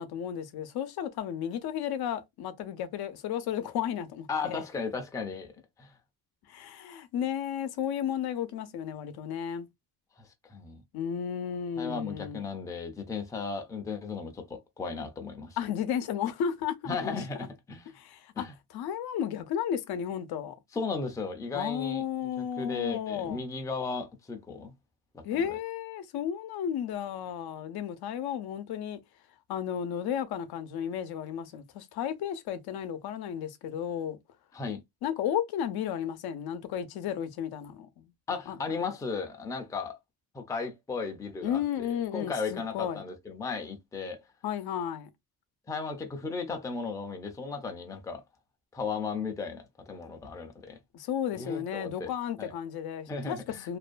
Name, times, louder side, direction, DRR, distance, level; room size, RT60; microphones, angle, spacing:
voice 1, 0.0-4.6 6.5-9.7 10.9-12.4 15.6-17.5 17.9-18.4 18.7-20.5 21.5-23.4 25.2-29.0 29.5-34.2 35.0-38.1 38.5-38.6 41.4-43.0 44.4-45.1 50.9-53.8, left 9 dB, 80° left, 0.6 m, -33 dB
voice 2, 4.3-5.5 5.8-5.9 10.2-10.8 11.8-15.6 16.9-17.9 18.4-18.5 20.7-22.0 22.4-24.7 25.1-25.6 34.5-34.8 38.3-40.0 40.3-41.6 42.1-44.2 45.7-48.2 48.7-50.8 51.4-52.1 52.4-52.5 53.1-53.7, left 4 dB, 10° left, 0.4 m, -35 dB
2.5 x 2.2 x 2.4 m
cardioid pair, 140°, 37 cm